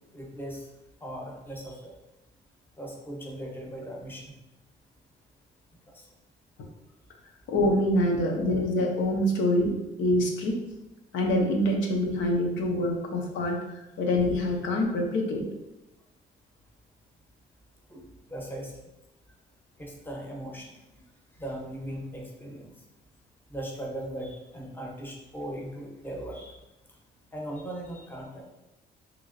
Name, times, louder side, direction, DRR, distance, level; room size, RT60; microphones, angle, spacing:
voice 1, 0.1-0.7 1.0-1.9 2.8-4.3 5.9-6.0 8.3-8.4 17.9-18.0 18.3-18.7 19.8-20.8 21.4-22.7 23.5-26.6 27.3-28.5, right 1 dB, 10° left, -1 dB, 0.7 m, -38 dB
voice 2, 7.5-10.6 11.1-15.4, left 1 dB, 75° left, 0 dB, 0.6 m, -25 dB
2.9 x 2.9 x 2.5 m, 0.94 s
cardioid pair, 90°, 20 cm